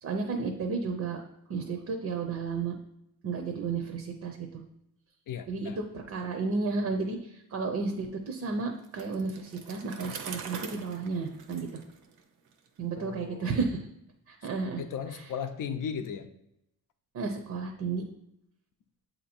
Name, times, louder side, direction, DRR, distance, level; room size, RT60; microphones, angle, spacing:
voice 1, 0.0-1.2 1.5-2.7 3.2-4.6 5.5-11.8 12.8-13.8 14.3-14.8 17.1-18.0, right 4 dB, 45° right, 4 dB, 0.6 m, -32 dB
voice 2, 5.3-5.8 12.9-13.6 14.8-16.3, left 7 dB, 60° left, 8 dB, 0.6 m, -36 dB
Bicycle, 8.8-12.7, right 6 dB, 80° right, 0.8 m, -43 dB
7.9 x 2.8 x 4.2 m, 0.81 s
wide cardioid pair, 175°, 36 cm